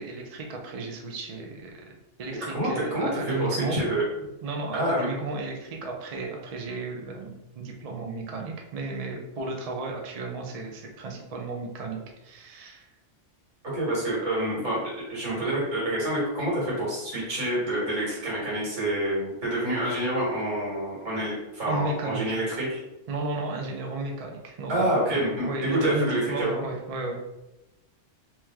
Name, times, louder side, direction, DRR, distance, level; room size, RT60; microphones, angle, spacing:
voice 1, 0.0-1.8 2.2-3.8 4.4-12.9 21.7-22.4 23.1-27.3, right 3 dB, 50° right, 1 dB, 0.4 m, -33 dB
voice 2, 2.5-4.0 4.7-5.1 13.7-14.8 15.1-22.8 24.7-26.6, right 1 dB, 70° right, -6 dB, 2.0 m, -27 dB
3.0 x 2.9 x 3.5 m, 0.96 s
omnidirectional pair, 1.3 m